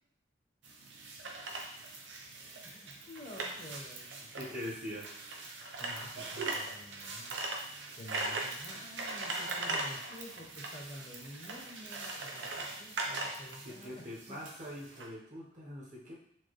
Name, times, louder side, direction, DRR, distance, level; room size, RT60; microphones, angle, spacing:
sound 1, 0.6-15.1, right 3 dB, 75° right, 0.6 m, -40 dB
voice 1, 2.6-4.4 5.8-7.4 8.0-14.4, left 1 dB, 35° left, -2 dB, 0.8 m, -50 dB
voice 2, 4.4-5.1 13.6-16.1, left 1 dB, 45° right, -4 dB, 1.0 m, -43 dB
4.5 x 2.2 x 3.1 m, 0.74 s
head